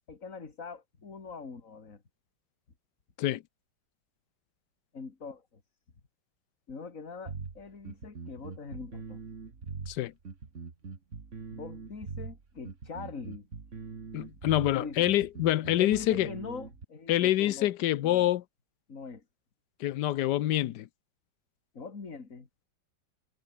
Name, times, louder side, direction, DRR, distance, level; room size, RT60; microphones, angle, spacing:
voice 1, 0.1-2.0 4.9-5.6 6.7-9.2 11.5-13.5 14.7-15.1 15.8-17.7 18.0-18.3 18.9-19.2 21.7-22.5, left 4 dB, 45° left, 2.9 m, -43 dB
sound 1, 7.3-16.9, right 4 dB, 40° right, 2.3 m, -42 dB
voice 2, 14.1-16.3 17.1-18.4 19.8-20.9, left 14 dB, 70° left, 1.3 m, -26 dB
omnidirectional pair, 2.0 m